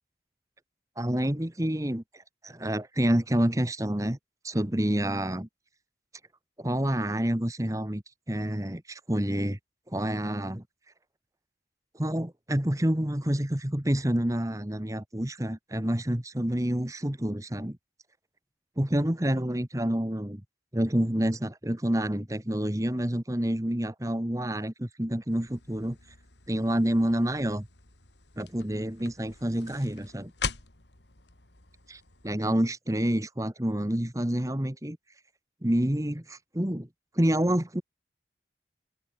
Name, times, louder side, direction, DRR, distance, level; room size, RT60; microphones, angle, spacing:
voice 1, 1.0-4.2 4.4-5.5 6.6-9.6 9.9-10.6 11.9-17.8 18.8-20.4 20.7-26.0 26.5-27.7 28.4-30.3 31.9-35.0 35.6-36.9 37.1-37.8, right 1 dB, 20° right, 1.4 m, -28 dB
sound 1, 25.3-32.4, left 5 dB, 90° left, 3.6 m, -42 dB
head